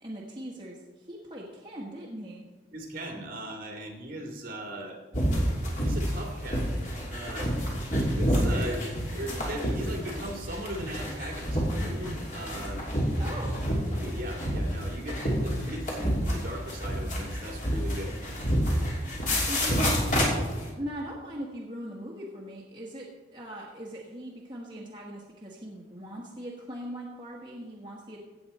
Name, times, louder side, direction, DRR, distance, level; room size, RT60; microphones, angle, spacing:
voice 1, 0.0-2.4 13.2-13.6 19.5-19.8 20.8-28.2, equal, 25° right, -4 dB, 1.4 m, -40 dB
voice 2, 2.7-5.0 5.8-6.8 7.1-7.5 8.1-12.8 13.9-18.2, equal, 50° right, 1 dB, 2.4 m, -38 dB
sound 1, 5.1-20.7, equal, 45° left, 3.0 m, -29 dB
16.5 x 7.8 x 4.2 m, 1.3 s
head